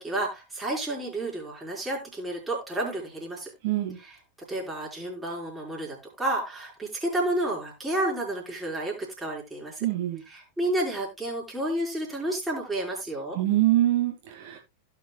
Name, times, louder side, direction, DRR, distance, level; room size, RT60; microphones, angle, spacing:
voice 1, 0.0-3.5 4.0-4.2 4.5-9.9 10.3-13.4, right 1 dB, 5° right, -3 dB, 4.3 m, -31 dB
voice 2, 3.6-4.0 9.8-10.2 13.4-14.6, right 14 dB, 50° right, 1 dB, 1.7 m, -24 dB
16.5 x 5.9 x 2.3 m, 0.23 s
figure-of-eight pair, 90°, 0 cm